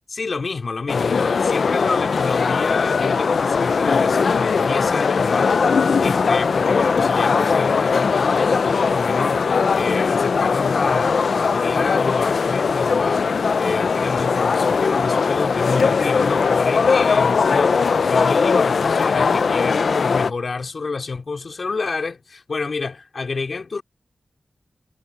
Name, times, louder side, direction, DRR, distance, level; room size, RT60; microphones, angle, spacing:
voice 1, 0.1-5.6 6.0-23.8, left 4 dB, 60° left, 3.1 m, -28 dB
sound 1, 0.9-20.3, left 5 dB, 80° left, 0.6 m, -19 dB
wide cardioid pair, 90°, 0 cm